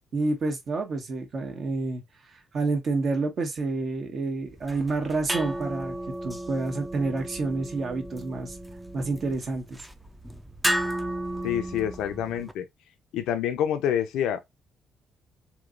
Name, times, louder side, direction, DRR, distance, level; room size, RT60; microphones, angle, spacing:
voice 1, 0.1-2.0 2.5-5.9 6.2-8.6 8.9-9.8, right 3 dB, 55° right, 1.2 m, -28 dB
sound 1, 4.5-12.5, right 1 dB, 10° right, 0.5 m, -34 dB
voice 2, 11.4-12.6 13.1-14.4, left 10 dB, 90° left, 0.5 m, -27 dB
3.1 x 2.9 x 2.5 m
cardioid pair, 90°, 0 cm